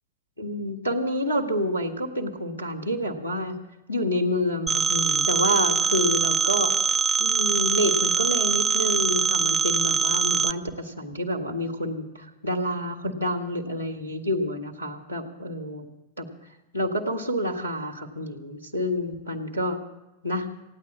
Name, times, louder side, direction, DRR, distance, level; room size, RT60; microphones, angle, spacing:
voice 1, 0.4-3.6 3.9-6.7 7.2-15.9 16.2-16.3 16.7-19.8 20.2-20.5, equal, 90° right, 3 dB, 1.6 m, -28 dB
Telephone, 4.7-10.5, right 5 dB, 15° right, 0.4 m, -23 dB
16.0 x 9.6 x 8.3 m, 1.0 s
figure-of-eight pair, 90°, 0 cm